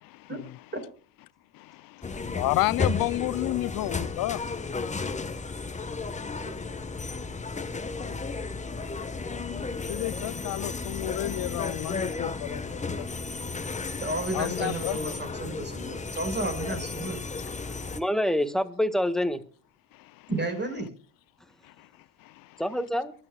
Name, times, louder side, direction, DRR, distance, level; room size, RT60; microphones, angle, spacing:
voice 1, 0.0-0.6 1.5-4.4 9.7-13.9 14.3-15.0 19.9-20.3 21.6-21.9 22.2-22.6, left 18 dB, 65° left, 0.6 m, -32 dB
sound 1, 2.0-18.0, left 4 dB, 20° left, 1.3 m, -33 dB
voice 2, 14.0-17.2 20.3-20.9, right 2 dB, 30° right, 5.4 m, -32 dB
voice 3, 17.9-19.4 22.6-23.1, left 1 dB, ahead, 1.7 m, -26 dB
23.5 x 12.0 x 2.4 m
supercardioid pair, 85°, 37 cm